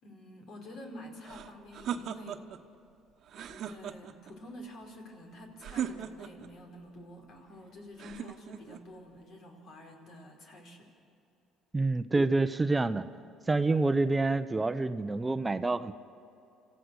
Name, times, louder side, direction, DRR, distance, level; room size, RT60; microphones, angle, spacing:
voice 1, 0.0-2.4 3.3-10.9, left 1 dB, 65° left, 1 dB, 4.6 m, -48 dB
sound 1, 1.2-2.6 3.3-4.3 5.6-6.5 8.0-8.8, right 9 dB, 60° right, 1.1 m, -38 dB
voice 2, 11.7-13.1 13.5-15.9, right 3 dB, 20° right, 11 dB, 0.7 m, -27 dB
28.0 x 15.0 x 6.4 m, 2.7 s
supercardioid pair, 80°, 0 cm